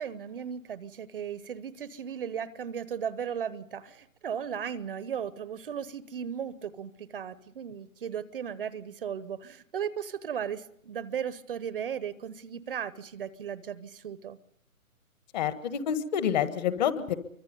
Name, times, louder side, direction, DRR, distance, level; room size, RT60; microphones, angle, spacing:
voice 1, 0.0-14.4, right 8 dB, 40° right, 17 dB, 0.9 m, -36 dB
voice 2, 15.3-17.1, left 9 dB, 30° left, 12 dB, 1.6 m, -28 dB
26.5 x 24.0 x 5.3 m, 0.70 s
figure-of-eight pair, 145°, 43 cm